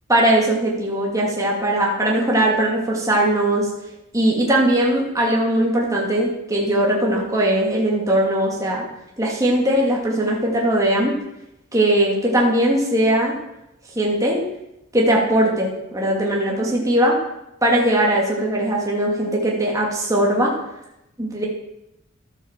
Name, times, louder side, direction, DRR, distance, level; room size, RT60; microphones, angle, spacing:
voice 1, 0.1-3.7 4.1-8.9 9.2-11.2 11.7-13.4 13.9-14.4 14.9-17.2 17.6-20.5 21.2-21.5, right 1 dB, 15° right, -2 dB, 2.5 m, -19 dB
12.5 x 8.7 x 7.4 m, 0.87 s
head